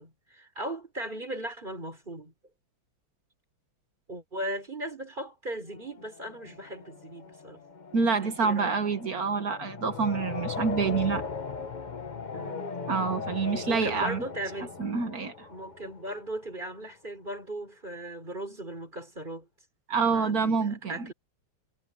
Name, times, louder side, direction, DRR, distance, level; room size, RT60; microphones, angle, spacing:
voice 1, 0.0-2.3 4.1-7.6 8.2-8.8 12.3-12.7 13.5-14.8 15.5-19.5 20.1-21.1, right 1 dB, 20° right, 5.0 m, -38 dB
sound 1, 5.7-16.6, left 5 dB, 40° left, 0.6 m, -39 dB
voice 2, 7.9-11.2 12.9-14.2 14.8-15.5 19.9-21.1, right 5 dB, 45° right, 1.6 m, -27 dB
omnidirectional pair, 2.4 m